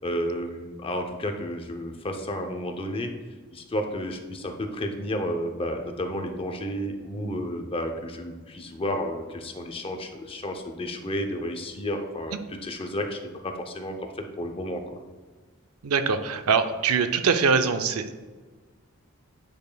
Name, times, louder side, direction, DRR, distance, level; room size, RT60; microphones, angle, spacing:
voice 1, 0.0-3.1 3.5-15.0, equal, 25° left, 5 dB, 0.6 m, -32 dB
voice 2, 15.8-18.1, right 5 dB, 90° right, 9 dB, 0.5 m, -23 dB
9.2 x 5.1 x 2.2 m, 1.4 s
head